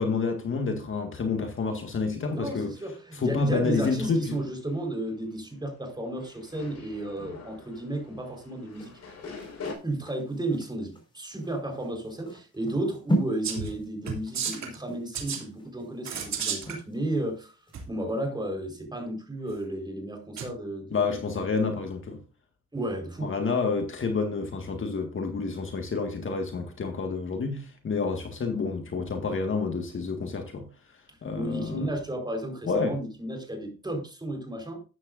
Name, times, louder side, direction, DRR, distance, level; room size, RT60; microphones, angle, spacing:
voice 1, 0.0-2.7 3.1-4.4 20.9-22.2 23.2-30.7 31.2-31.9 32.6-33.0, left 4 dB, 40° left, 1.8 m, -29 dB
voice 2, 2.3-8.9 9.8-17.6 17.9-21.2 22.7-23.3 31.1-34.8, right 1 dB, 15° right, 4.4 m, -33 dB
sound 1, 3.9-9.7, left 4 dB, 60° left, 4.8 m, -45 dB
sound 2, 8.7-17.3 17.7-17.8, equal, 15° left, 4.9 m, -36 dB
sound 3, 13.4-13.7 14.1-14.8 15.1-15.4 16.0-16.8 17.7-17.8 20.4-20.5, right 7 dB, 65° right, 2.9 m, -32 dB
13.0 x 9.7 x 2.6 m
cardioid pair, 90°, 30 cm